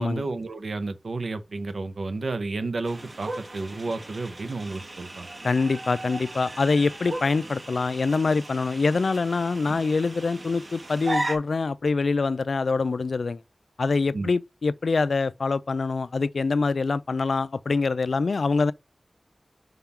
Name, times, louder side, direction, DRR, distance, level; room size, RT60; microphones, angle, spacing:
voice 1, 0.0-5.3 14.1-14.3, right 3 dB, 85° right, 0.9 m, -31 dB
sound 1, 2.8-11.4, right 2 dB, 45° right, 2.2 m, -36 dB
voice 2, 5.4-13.4 13.8-18.7, left 4 dB, 85° left, 0.3 m, -25 dB
5.5 x 3.6 x 5.6 m
wide cardioid pair, 70°, 0 cm